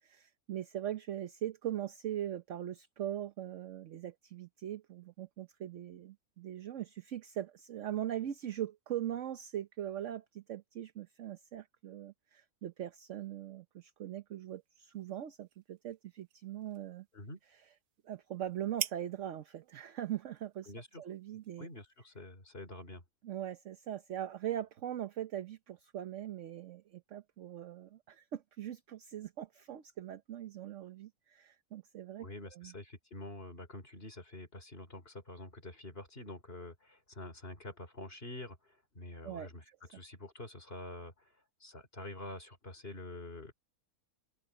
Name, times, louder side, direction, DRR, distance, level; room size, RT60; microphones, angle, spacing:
voice 1, 0.0-17.1 18.0-20.7 21.0-21.7 23.2-32.7 39.2-39.5, right 11 dB, 55° right, 1.1 m, -41 dB
sound 1, 14.5-22.2, right 10 dB, 75° right, 1.4 m, -48 dB
voice 2, 20.7-21.0 21.6-23.0 32.2-39.6 39.9-41.3 41.6-43.5, left 2 dB, 40° left, 4.4 m, -47 dB
open air
omnidirectional pair, 1.6 m